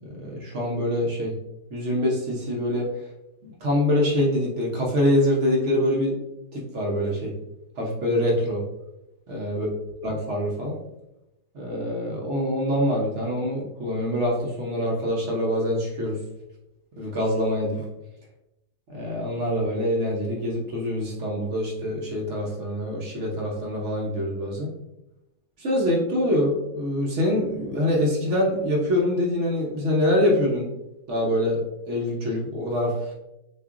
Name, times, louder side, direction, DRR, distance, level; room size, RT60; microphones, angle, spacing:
voice 1, 0.0-1.3 1.7-2.9 3.4-6.2 6.5-7.3 7.8-8.7 9.3-9.7 10.0-10.8 11.5-16.2 17.0-17.8 18.9-24.7 25.6-30.7 31.1-31.6 31.9-33.1, left 1 dB, 50° right, -2 dB, 1.0 m, -25 dB
6.5 x 2.5 x 2.4 m, 0.91 s
omnidirectional pair, 1.9 m